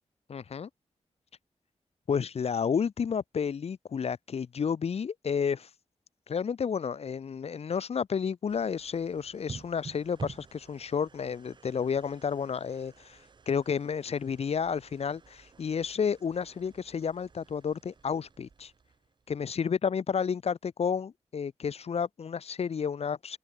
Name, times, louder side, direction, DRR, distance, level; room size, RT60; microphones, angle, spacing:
voice 1, 0.3-0.7 2.1-5.7 6.3-13.2 13.4-18.7 19.3-23.4, left 6 dB, 60° left, 5.0 m, -31 dB
sound 1, 8.5-19.5, right 5 dB, 40° right, 4.6 m, -49 dB
open air
wide cardioid pair, 180°, 12 cm